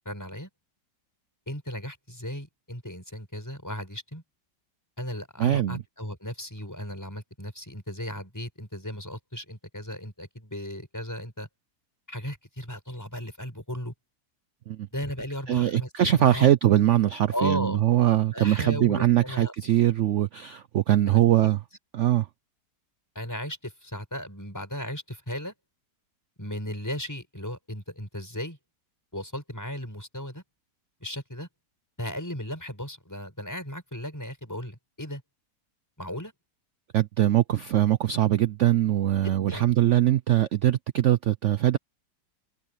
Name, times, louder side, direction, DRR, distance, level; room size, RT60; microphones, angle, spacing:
voice 1, 0.0-0.5 1.5-4.2 5.0-11.5 12.1-13.9 14.9-16.5 17.3-17.8 18.3-19.5 21.1-21.2 23.1-25.5 26.4-28.6 29.1-30.4 31.0-31.5 32.0-35.2 36.0-36.3 39.2-39.7, equal, 10° left, 6.3 m, -36 dB
voice 2, 5.4-5.8 14.7-14.9 15.5-21.6 21.9-22.3 36.9-41.8, right 12 dB, 70° right, 0.7 m, -22 dB
open air
omnidirectional pair, 1.8 m